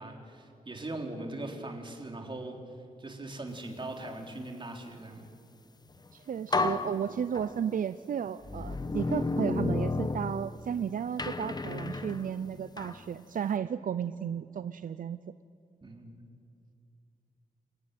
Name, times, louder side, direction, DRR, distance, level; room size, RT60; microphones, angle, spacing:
voice 1, 0.0-2.6 3.0-5.2 15.8-16.2, right 2 dB, 35° right, 2 dB, 3.6 m, -40 dB
sound 1, 5.9-6.1 6.5-7.8 8.4-10.8 11.2-13.0, left 3 dB, 30° left, 1.1 m, -32 dB
voice 2, 6.1-15.2, right 8 dB, 70° right, 13 dB, 0.6 m, -33 dB
28.0 x 16.0 x 9.1 m, 2.4 s
cardioid pair, 85°, 15 cm